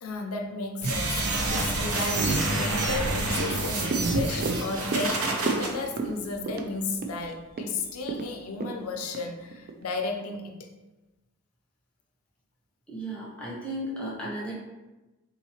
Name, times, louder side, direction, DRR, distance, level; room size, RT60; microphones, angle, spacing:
voice 1, 0.0-10.7, left 3 dB, 75° left, 4 dB, 0.5 m, -34 dB
sound 1, 0.8-5.7, right 2 dB, 80° right, 0.7 m, -27 dB
sound 2, 3.4-9.8 10.2-10.3, right 4 dB, 45° right, 0.3 m, -34 dB
voice 2, 12.9-14.5, right 1 dB, 5° left, -6 dB, 0.7 m, -34 dB
3.9 x 2.8 x 2.8 m, 1.1 s
head